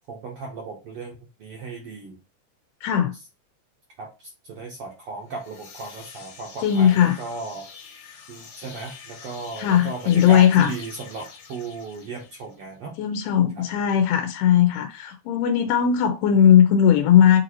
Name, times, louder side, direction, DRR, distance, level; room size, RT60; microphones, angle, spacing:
voice 1, 0.1-2.2 4.0-7.7 8.3-12.9, right 3 dB, 70° right, 1.4 m, -36 dB
voice 2, 2.8-3.1 6.6-7.2 9.6-10.7 13.0-17.4, left 9 dB, 85° left, 2.2 m, -18 dB
sound 1, 5.2-12.6, left 6 dB, 70° left, 2.2 m, -45 dB
6.4 x 2.5 x 2.9 m
omnidirectional pair, 3.6 m